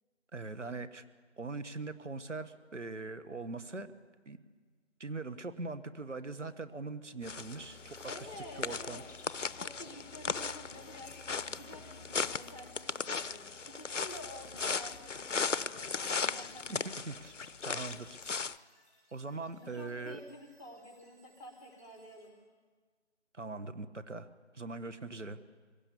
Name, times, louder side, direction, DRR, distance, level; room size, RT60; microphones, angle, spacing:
voice 1, 0.3-1.0 1.4-3.9 4.2-4.4 5.0-8.0 8.6-9.0 16.7-16.8 17.1-17.3 17.6-18.2 19.1-20.2 23.3-24.3 24.5-25.4, right 3 dB, 80° right, 11 dB, 1.4 m, -41 dB
sound 1, 7.2-18.6, left 5 dB, 85° left, 0.8 m, -37 dB
sound 2, 7.2-22.3, equal, 15° right, 5.0 m, -67 dB
voice 2, 8.0-9.1 9.4-17.0 19.6-22.4, left 1 dB, 30° left, 1 dB, 3.5 m, -50 dB
24.0 x 17.0 x 7.0 m, 1.5 s
figure-of-eight pair, 175°, 36 cm